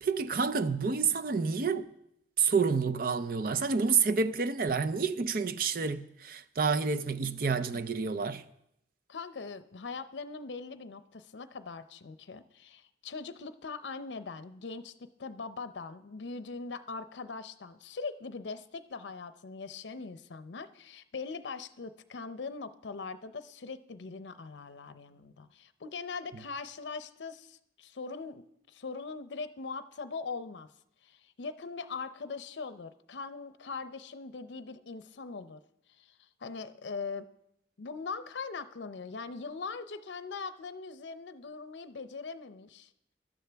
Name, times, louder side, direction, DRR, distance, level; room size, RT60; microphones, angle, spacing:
voice 1, 0.0-1.9 2.4-8.4, right 5 dB, 50° right, 0.5 m, -29 dB
voice 2, 9.1-14.9 15.2-30.7 31.0-35.6 36.0-36.1 36.4-37.3 37.8-42.9, left 4 dB, 85° left, 0.6 m, -41 dB
16.0 x 12.0 x 3.4 m
head